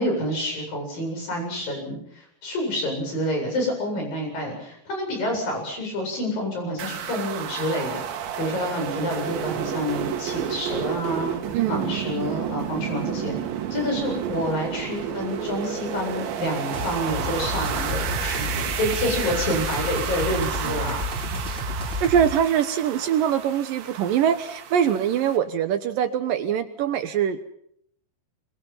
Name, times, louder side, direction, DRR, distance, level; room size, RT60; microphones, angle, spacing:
voice 1, 0.0-8.1 8.4-11.4 11.7-13.4 13.7-21.0, left 1 dB, 50° left, 2 dB, 9.7 m, -28 dB
sound 1, 6.8-25.4, right 9 dB, 85° right, 4.2 m, -31 dB
voice 2, 11.5-11.9 20.6-20.9 21.3-21.4 22.0-27.5, right 9 dB, 70° right, 10 dB, 2.3 m, -23 dB
sound 2, 16.7-22.3, left 1 dB, 10° right, 7.2 m, -31 dB
25.0 x 24.5 x 5.6 m, 0.69 s
omnidirectional pair, 5.0 m